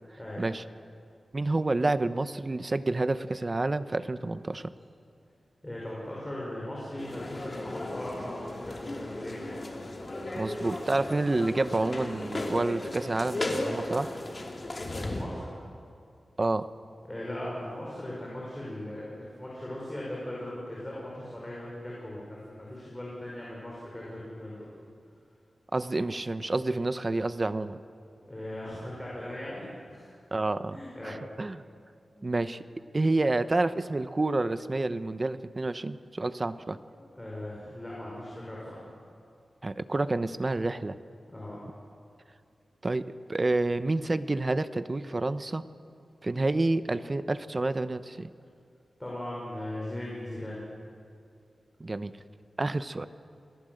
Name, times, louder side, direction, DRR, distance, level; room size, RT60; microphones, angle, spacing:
voice 1, 1.3-4.7 10.4-14.1 16.4-16.7 25.7-27.8 30.3-30.8 31.0-31.6 32.2-32.6 32.9-36.8 39.6-40.9 42.8-45.6 46.2-48.3 51.8-52.2 52.6-53.1, right 2 dB, 30° right, 12 dB, 0.8 m, -29 dB
voice 2, 5.6-9.6 14.8-15.5 17.0-24.7 28.2-30.1 30.7-31.2 32.1-32.3 36.9-38.8 41.3-41.6 49.0-50.6, left 1 dB, 15° left, -5 dB, 5.6 m, -39 dB
sound 1, 7.0-15.2, left 1 dB, 35° left, 2.8 m, -35 dB
27.5 x 18.5 x 7.9 m, 2.4 s
wide cardioid pair, 135°, 0 cm